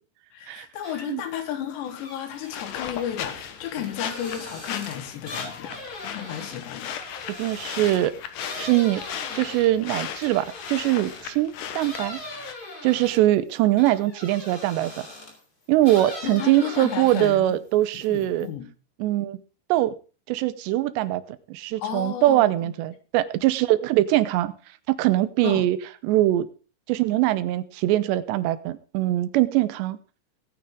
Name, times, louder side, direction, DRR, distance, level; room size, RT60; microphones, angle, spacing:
voice 1, 0.3-7.0 16.2-17.6 18.1-18.7 21.8-22.7 25.4-25.7, left 10 dB, 85° left, 8 dB, 3.8 m, -33 dB
sound 1, 0.8-1.3 1.6-11.4 11.8-15.4 15.8-17.5 17.8-18.5, left 1 dB, 25° left, 3.3 m, -41 dB
sound 2, 1.9-12.5, left 9 dB, 65° left, 2.4 m, -37 dB
voice 2, 7.4-8.1 8.6-9.0 9.4-12.2 12.8-15.1 15.7-18.5 19.0-19.4 19.7-19.9 20.3-21.2 21.5-24.5 24.9-25.8 26.0-26.5 26.9-30.0, right 15 dB, 90° right, 14 dB, 3.0 m, -22 dB
18.5 x 9.4 x 3.8 m, 0.36 s
omnidirectional pair, 4.8 m